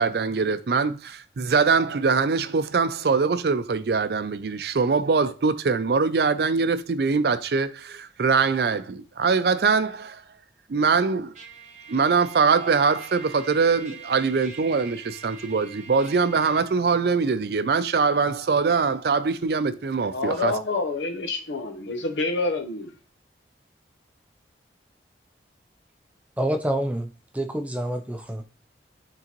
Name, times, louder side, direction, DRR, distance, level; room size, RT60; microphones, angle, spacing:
voice 1, 0.0-10.2 10.7-11.3 11.9-20.5, right 5 dB, 60° right, 0.4 m, -23 dB
Trumpet, 11.3-16.7, right 6 dB, 40° right, 1.1 m, -44 dB
voice 2, 20.1-22.9, left 3 dB, 85° left, 0.9 m, -27 dB
voice 3, 26.4-28.4, right 1 dB, 10° right, 0.5 m, -27 dB
8.2 x 3.7 x 3.0 m
head